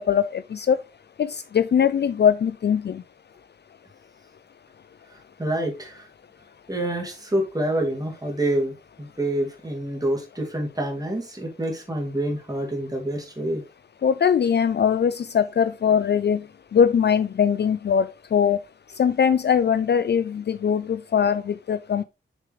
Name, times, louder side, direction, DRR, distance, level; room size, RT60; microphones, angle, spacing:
voice 1, 0.1-0.8 1.2-1.3 1.5-3.0 14.0-16.4 16.7-18.0 18.3-18.6 19.0-22.0, left 7 dB, 55° left, 0.4 m, -21 dB
voice 2, 5.4-6.1 6.7-8.7 9.0-13.6, right 1 dB, 20° right, 2.7 m, -27 dB
7.2 x 6.6 x 3.2 m
wide cardioid pair, 145°, 20 cm